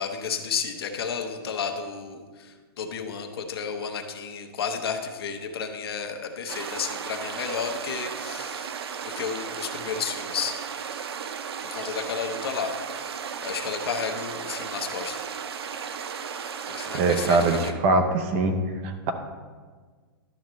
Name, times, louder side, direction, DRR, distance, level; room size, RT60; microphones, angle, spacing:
voice 1, 0.0-8.7 9.0-10.6 11.7-13.0 13.4-15.2 16.7-17.7, left 6 dB, 75° left, 4 dB, 1.1 m, -32 dB
sound 1, 6.5-17.7, right 7 dB, 90° right, 0.6 m, -35 dB
voice 2, 16.9-18.5 18.8-19.1, right 3 dB, 25° right, 6 dB, 0.6 m, -22 dB
11.5 x 6.5 x 3.1 m, 1.5 s
hypercardioid pair, 170°, 13 cm